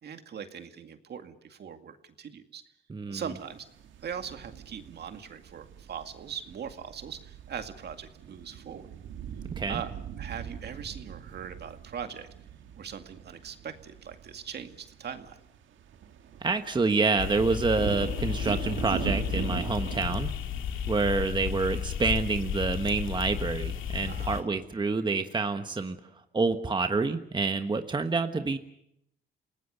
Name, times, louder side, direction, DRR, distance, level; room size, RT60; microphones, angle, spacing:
voice 1, 0.0-2.6 3.1-3.7 4.0-8.9 9.7-9.9 10.2-12.3 12.8-15.4 24.1-24.4, right 7 dB, 55° right, 7 dB, 2.2 m, -40 dB
voice 2, 2.9-3.2 9.6-9.8 16.4-20.3 20.9-26.0 26.3-28.6, right 4 dB, 25° right, 7 dB, 1.3 m, -27 dB
sound 1, 3.3-20.2, right 9 dB, 75° right, 1.7 m, -41 dB
sound 2, 17.2-24.4, left 8 dB, 80° left, 2.2 m, -33 dB
28.5 x 18.5 x 6.8 m, 0.74 s
cardioid pair, 90°, 20 cm